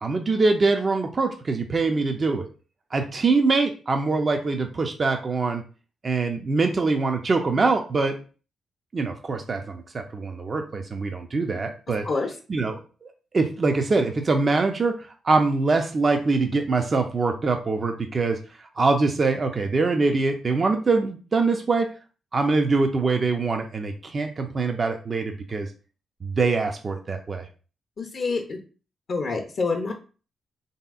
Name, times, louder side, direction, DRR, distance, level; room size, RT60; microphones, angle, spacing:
voice 1, 0.0-2.5 2.9-5.6 6.0-8.1 8.9-12.1 12.5-13.1 13.3-18.4 18.8-21.9 22.3-25.7 26.2-27.5, right 3 dB, 45° right, 4 dB, 0.4 m, -23 dB
voice 2, 28.0-28.6 29.1-29.9, left 4 dB, 55° left, 1 dB, 0.5 m, -27 dB
3.2 x 2.7 x 2.3 m, 0.36 s
hypercardioid pair, 40°, 0 cm